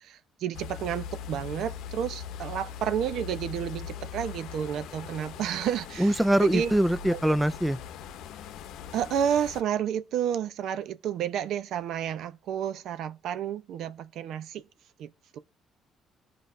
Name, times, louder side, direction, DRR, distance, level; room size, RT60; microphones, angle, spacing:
voice 1, 0.0-6.7 7.1-7.4 8.9-14.6 15.0-15.4, right 9 dB, 70° right, 0.7 m, -31 dB
sound 1, 0.5-9.6, left 8 dB, 80° left, 0.7 m, -41 dB
voice 2, 6.0-7.8, right 1 dB, 5° right, 0.3 m, -23 dB
15.0 x 5.2 x 2.6 m
cardioid pair, 100°, 0 cm